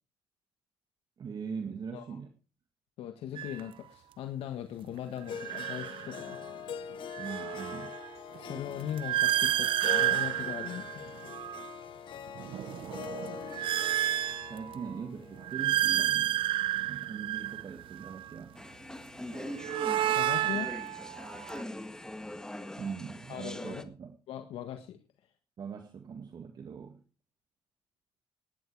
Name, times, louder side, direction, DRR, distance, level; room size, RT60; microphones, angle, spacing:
voice 1, 1.2-2.3 7.2-8.0 14.5-16.4 16.9-18.7 22.7-24.2 25.6-27.0, right 6 dB, 45° right, 6 dB, 1.9 m, -41 dB
voice 2, 3.0-6.5 8.4-11.1 16.0-16.1 20.1-20.7 23.3-23.8 24.3-25.0, left 10 dB, 80° left, 7 dB, 1.6 m, -39 dB
sound 1, 3.4-3.6 5.3-6.5 6.9-11.8 12.3-14.9 15.4-18.3 19.3-21.6, right 13 dB, 65° right, 0.6 m, -31 dB
Harp, 5.3-17.4, left 8 dB, 60° left, 1.3 m, -44 dB
sound 2, 18.5-23.8, left 1 dB, 5° left, 1.7 m, -42 dB
17.5 x 11.0 x 4.8 m, 0.35 s
cardioid pair, 115°, 10 cm